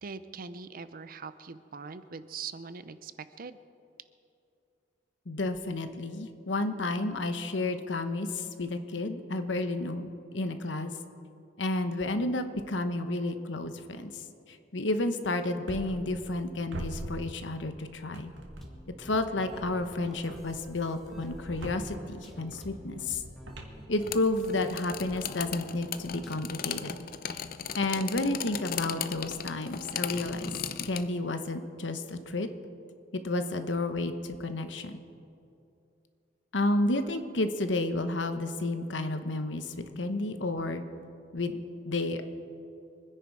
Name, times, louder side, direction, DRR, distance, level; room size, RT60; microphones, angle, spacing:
voice 1, 0.0-3.1 3.4-3.6, right 5 dB, 50° right, 13 dB, 0.6 m, -42 dB
voice 2, 5.3-10.9 11.6-14.2 14.5-18.3 19.0-23.2 23.9-27.0 27.3-27.5 27.8-30.5 30.8-32.5 33.2-35.0 36.5-40.8 41.3-41.6 41.8-42.2, left 2 dB, 80° left, 8 dB, 1.1 m, -31 dB
sound 1, 15.7-16.4 16.7-17.8 18.1-19.0 19.5-24.6, right 1 dB, 90° right, 1.9 m, -44 dB
sound 2, 18.6-26.7, equal, ahead, 2.0 m, -50 dB
sound 3, 24.0-31.1, left 8 dB, 55° left, 0.6 m, -37 dB
25.5 x 10.0 x 4.8 m, 2.7 s
head